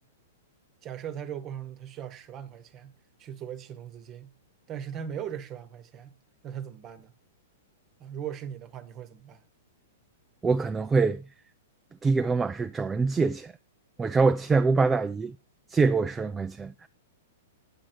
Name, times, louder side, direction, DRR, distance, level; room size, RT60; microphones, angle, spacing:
voice 1, 0.8-2.9 3.2-4.3 4.7-6.1 6.4-7.1 8.0-9.4, right 9 dB, 30° right, 1.0 m, -39 dB
voice 2, 10.4-11.2 12.0-13.5 14.0-15.4 15.7-16.9, right 4 dB, 15° right, 0.4 m, -24 dB
8.7 x 7.4 x 4.4 m
hypercardioid pair, 115°, 0 cm